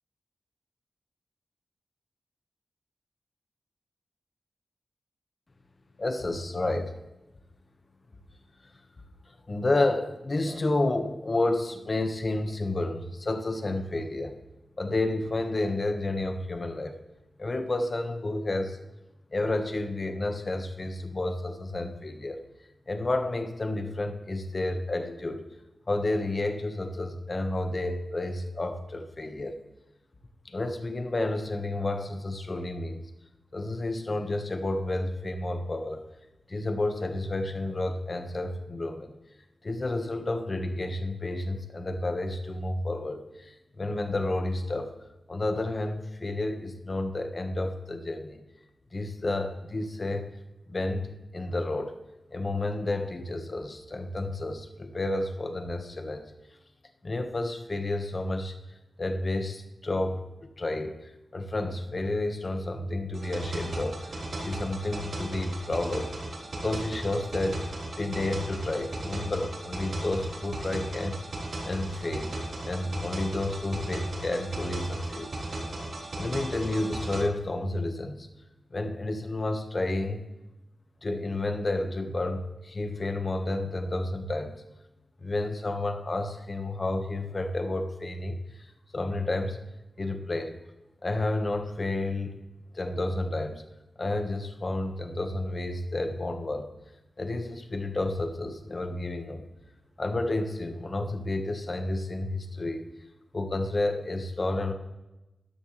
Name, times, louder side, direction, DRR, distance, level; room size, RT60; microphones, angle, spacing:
voice 1, 6.0-6.9 9.5-14.3 14.8-16.9 17.4-18.8 19.3-22.4 22.9-25.4 25.9-29.5 30.4-33.1 33.5-36.1 36.5-39.1 39.6-44.9 45.3-48.4 48.9-50.3 50.7-51.9 52.3-56.3 57.0-58.5 59.0-60.2 60.6-66.1 66.6-67.6 67.9-71.1 71.6-72.3 72.6-75.3 76.1-78.3 78.7-80.2 81.0-84.6 85.2-88.4 88.9-89.6 90.0-90.5 91.0-92.3 92.7-93.6 94.0-96.7 97.2-99.5 100.0-102.8 103.3-104.7, left 2 dB, 35° left, 6 dB, 1.4 m, -30 dB
sound 1, 63.1-77.2, right 1 dB, 70° right, 3.9 m, -36 dB
13.5 x 11.0 x 3.3 m, 0.98 s
wide cardioid pair, 110°, 0 cm